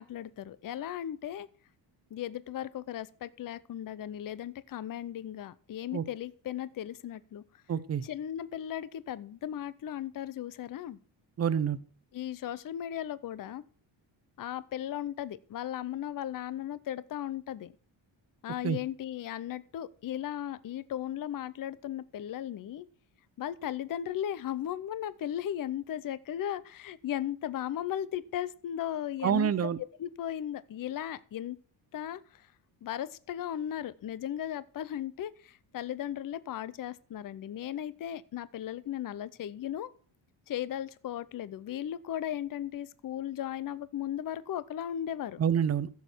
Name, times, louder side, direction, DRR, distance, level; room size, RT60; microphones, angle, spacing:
voice 1, 0.0-1.5 2.1-7.6 8.0-11.0 12.1-13.6 14.4-17.7 18.4-22.9 23.4-29.5 30.0-31.6 31.9-32.5 32.8-39.9 40.5-45.4, left 11 dB, 45° left, 0.7 m, -36 dB
voice 2, 7.7-8.1 11.4-11.8 18.6-18.8 29.2-29.8 45.4-45.9, right 8 dB, 30° right, 0.7 m, -27 dB
15.0 x 7.1 x 4.5 m
cardioid pair, 130°, 47 cm